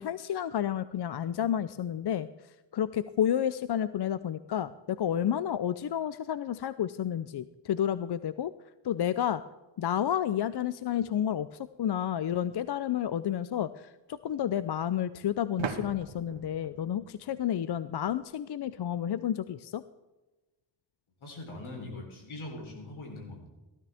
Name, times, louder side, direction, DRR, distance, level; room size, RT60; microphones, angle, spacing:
voice 1, 0.0-2.3 2.7-8.5 8.8-9.4 9.8-19.8, left 10 dB, 55° left, 15 dB, 0.6 m, -30 dB
sound 1, 15.6-18.2, right 6 dB, 75° right, 1.5 m, -40 dB
voice 2, 21.2-23.5, left 2 dB, 85° left, 1 dB, 3.8 m, -42 dB
15.5 x 13.0 x 3.5 m, 1.1 s
cardioid pair, 60°, 47 cm